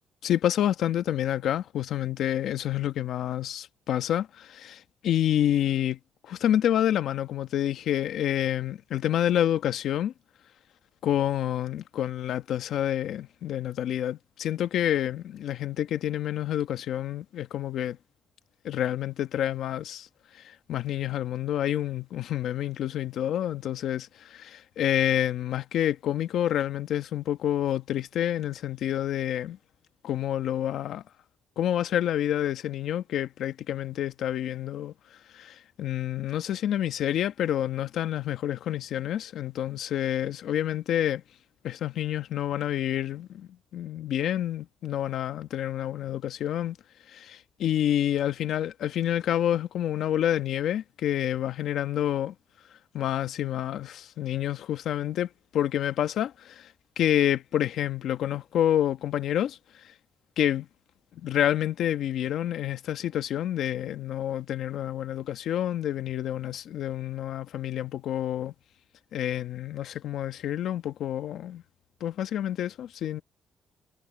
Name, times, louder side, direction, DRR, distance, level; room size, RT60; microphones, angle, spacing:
voice 1, 0.2-6.0 6.2-10.1 11.0-18.0 18.6-20.1 20.3-29.6 30.0-31.0 31.6-34.9 35.3-41.2 41.6-46.8 47.1-52.3 52.9-56.7 57.0-59.6 60.4-60.7 61.2-68.5 69.1-71.6 72.0-73.2, left 11 dB, 75° left, 1.4 m, -28 dB
cardioid pair, 90°, 0 cm